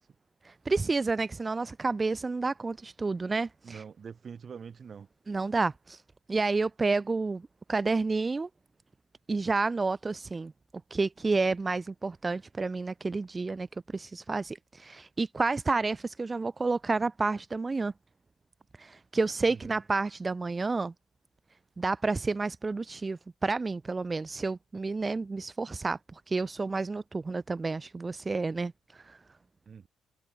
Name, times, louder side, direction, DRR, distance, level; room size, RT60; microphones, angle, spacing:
voice 1, 0.4-3.8 5.3-6.0 6.3-8.5 9.3-10.5 10.9-17.9 18.8-20.9 21.8-29.2, right 3 dB, 25° right, 0.6 m, -30 dB
voice 2, 3.6-5.1 19.5-19.8 29.7-29.9, right 6 dB, 45° right, 5.5 m, -44 dB
cardioid pair, 90°, 0 cm